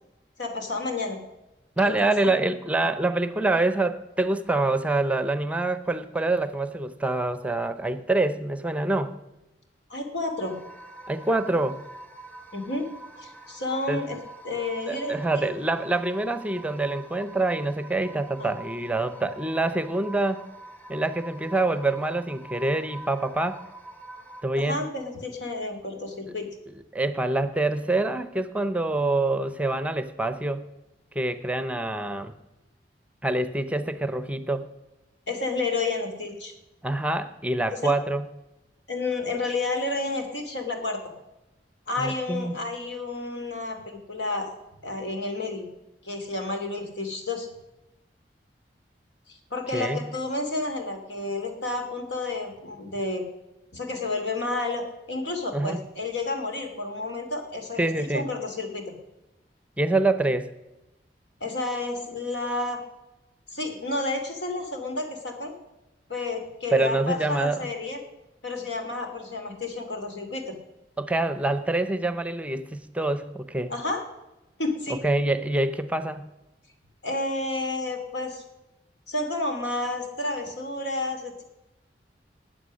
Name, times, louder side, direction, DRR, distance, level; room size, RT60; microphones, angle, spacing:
voice 1, 0.4-1.2 1.8-2.3 9.9-10.6 12.5-12.9 13.2-14.2 14.4-15.5 18.4-18.5 24.6-26.5 35.3-36.5 37.8-37.9 38.9-41.0 41.9-44.5 44.8-45.7 46.0-47.5 49.3-53.2 53.7-57.9 58.1-58.9 61.4-62.8 63.5-65.5 66.1-68.0 68.4-70.5 73.7-74.0 74.6-75.0 77.0-78.4 79.1-81.4, left 2 dB, 90° left, 4 dB, 2.7 m, -30 dB
voice 2, 1.8-9.1 11.1-11.8 13.9-14.1 14.9-20.4 20.9-23.6 24.4-24.8 26.3-26.4 26.9-30.6 31.1-32.3 33.2-34.6 36.8-38.3 42.0-42.5 49.7-50.1 55.5-55.8 57.8-58.3 59.8-60.5 66.7-67.7 71.0-73.7 74.9-76.3, right 2 dB, 10° right, 12 dB, 0.7 m, -26 dB
sound 1, 10.4-24.4, right 1 dB, 10° left, 1.1 m, -45 dB
20.0 x 7.7 x 6.4 m, 0.97 s
head